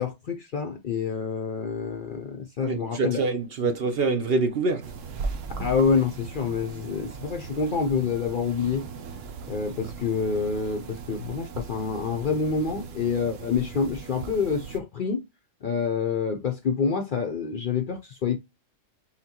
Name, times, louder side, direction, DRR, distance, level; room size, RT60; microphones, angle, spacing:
voice 1, 0.0-3.2 3.6-3.7 5.6-8.9 9.5-15.2 15.6-18.4, left 5 dB, 55° left, 0.6 m, -27 dB
voice 2, 2.6-4.9, right 3 dB, 60° right, 0.7 m, -25 dB
sound 1, 4.8-14.8, right 5 dB, 75° right, 1.0 m, -38 dB
5.7 x 2.2 x 2.8 m
omnidirectional pair, 1.3 m